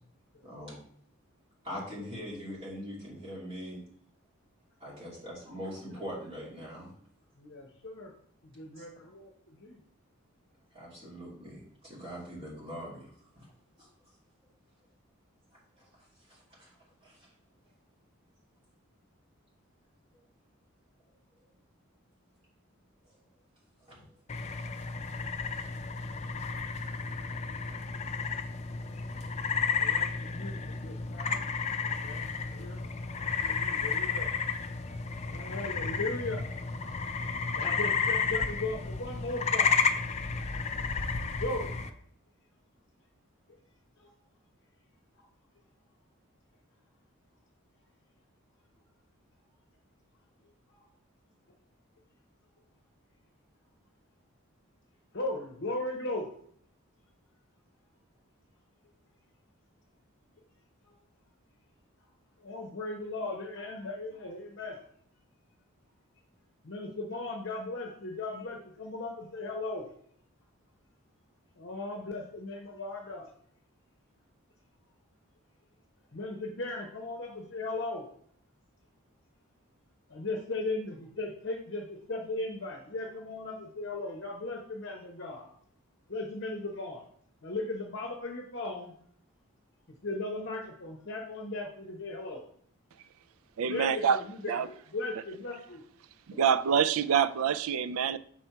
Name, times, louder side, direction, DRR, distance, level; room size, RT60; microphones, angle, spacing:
voice 1, 0.4-0.8 1.6-3.8 4.8-6.9 8.8-8.9 10.7-13.5 13.8-13.9 15.8-15.9 16.3-16.7 17.0-17.3 23.8-24.0 24.6-24.7 25.6-25.7, equal, 25° right, 2.8 m, -42 dB
voice 2, 7.4-8.1 8.4-9.8 29.5-31.4 31.8-34.3 35.3-36.4 37.5-39.8 41.4-41.7 44.0-44.1 55.1-56.3 60.8-60.9 62.4-64.8 66.6-69.9 71.6-73.3 76.1-78.1 80.1-85.5 86.1-87.0 87.4-88.9 90.0-92.4 93.7-95.8, left 2 dB, 55° left, 0.8 m, -37 dB
sound 1, 24.3-41.9, left 5 dB, 30° left, 0.4 m, -32 dB
voice 3, 93.6-94.2 94.5-94.7 96.3-98.2, right 7 dB, 75° right, 0.4 m, -26 dB
6.0 x 4.3 x 4.6 m
head